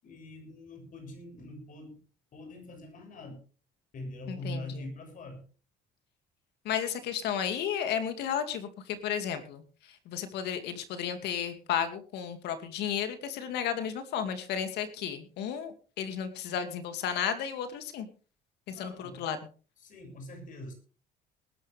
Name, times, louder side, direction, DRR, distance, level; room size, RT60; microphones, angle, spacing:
voice 1, 0.0-2.0 2.3-3.4 3.9-5.5 18.7-19.2 19.8-20.7, left 1 dB, 50° left, 5 dB, 6.9 m, -43 dB
voice 2, 4.3-4.8 6.6-18.1 18.7-19.4, left 8 dB, 80° left, 9 dB, 2.5 m, -33 dB
20.0 x 11.5 x 3.5 m, 0.37 s
cardioid pair, 110°, 17 cm